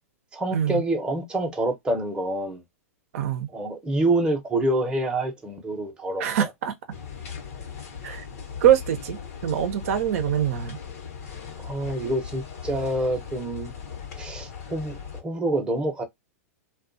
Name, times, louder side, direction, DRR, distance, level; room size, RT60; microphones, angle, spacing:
voice 1, 0.3-2.6 3.5-6.5 11.6-13.7 14.2-16.0, right 1 dB, 10° right, 0.7 m, -27 dB
voice 2, 3.1-3.5 6.2-6.7 8.0-8.2 8.6-9.2 9.4-10.8, right 10 dB, 60° right, 0.6 m, -23 dB
sound 1, 6.9-15.2, left 7 dB, 70° left, 0.9 m, -38 dB
2.4 x 2.3 x 2.5 m
hypercardioid pair, 115°, 8 cm